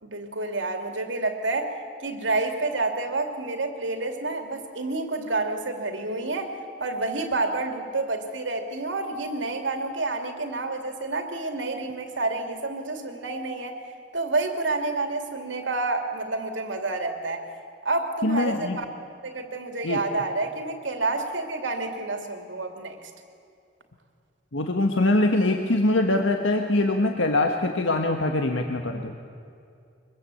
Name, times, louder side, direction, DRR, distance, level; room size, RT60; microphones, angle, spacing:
voice 1, 0.0-13.8 14.1-17.4 17.8-18.8 19.2-23.1, right 3 dB, 75° right, 5 dB, 2.7 m, -29 dB
voice 2, 18.2-18.8 19.8-20.0 24.5-29.1, left 2 dB, 90° left, 4 dB, 1.4 m, -23 dB
23.5 x 21.5 x 8.6 m, 2.4 s
head